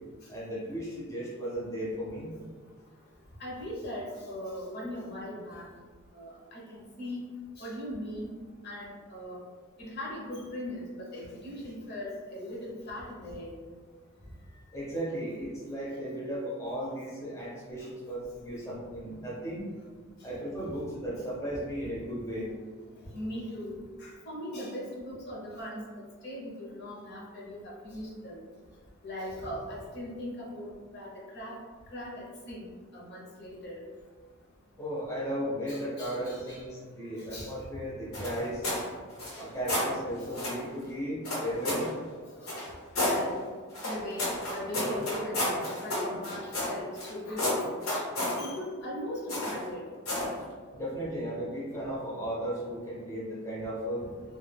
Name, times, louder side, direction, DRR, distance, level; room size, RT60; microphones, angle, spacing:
voice 1, 0.3-2.3 14.5-19.7 20.2-22.5 34.8-38.6 39.3-41.9 50.7-54.0, equal, 15° left, -7 dB, 0.6 m, -35 dB
voice 2, 3.4-5.7 6.1-7.3 7.6-8.3 8.6-9.4 9.8-13.6 22.4-22.5 23.1-25.8 26.2-28.4 29.0-31.6 31.9-32.7 32.9-33.8 35.7-36.6 37.3-37.5 40.3-40.5 42.4-42.5 42.9-43.4 43.8-47.7 48.4-49.8, left 1 dB, 50° left, -5 dB, 0.7 m, -39 dB
sound 1, 38.1-38.8 39.1-39.9 40.3-40.6 41.2-41.9 42.5-43.2 43.7-47.1 47.4-48.4 49.3-49.6 50.0-50.3, left 1 dB, 85° left, 1.0 m, -31 dB
2.2 x 2.2 x 3.3 m, 1.5 s
head